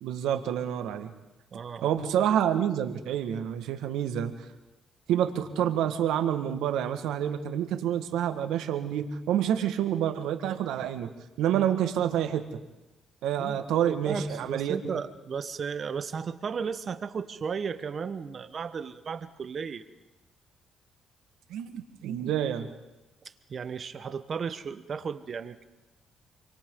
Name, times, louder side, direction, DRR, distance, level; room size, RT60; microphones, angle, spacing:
voice 1, 0.0-1.1 1.8-4.3 5.1-11.1 11.4-12.5 13.2-15.0 21.5-22.7, right 10 dB, 85° right, 7 dB, 1.6 m, -28 dB
voice 2, 1.5-1.9 13.4-13.6 13.9-19.8 23.5-25.6, right 6 dB, 50° right, 11 dB, 1.2 m, -34 dB
29.5 x 23.5 x 3.8 m, 1.0 s
cardioid pair, 90°, 0 cm